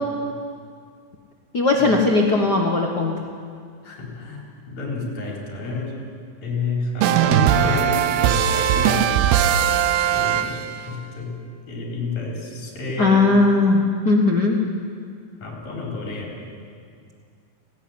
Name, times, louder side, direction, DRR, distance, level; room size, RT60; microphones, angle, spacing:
voice 1, 1.5-3.1 13.0-14.6, left 3 dB, 70° left, -1 dB, 0.9 m, -18 dB
voice 2, 3.8-6.0 6.4-9.4 10.1-10.6 10.9-11.3 11.7-13.4 15.4-16.3, left 3 dB, 45° left, -2 dB, 5.4 m, -29 dB
sound 1, 7.0-10.9, right 10 dB, 85° right, 2.8 m, -19 dB
18.5 x 17.0 x 9.6 m, 2.2 s
omnidirectional pair, 4.4 m